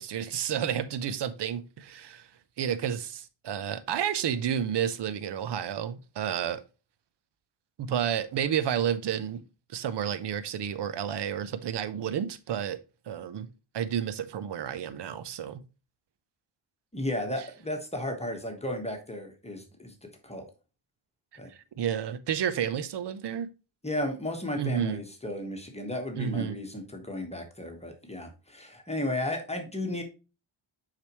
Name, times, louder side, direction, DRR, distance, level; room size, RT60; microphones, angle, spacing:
voice 1, 0.0-2.3 2.6-6.6 7.8-9.4 9.7-12.8 13.1-13.5 13.7-15.6 21.5-23.5 24.6-25.0 26.1-26.6, right 9 dB, 55° right, 0.8 m, -31 dB
voice 2, 16.9-19.9 20.2-20.4 21.4-21.5 23.8-30.0, left 1 dB, 15° left, 1.2 m, -34 dB
6.6 x 5.0 x 3.0 m
cardioid pair, 100°, 49 cm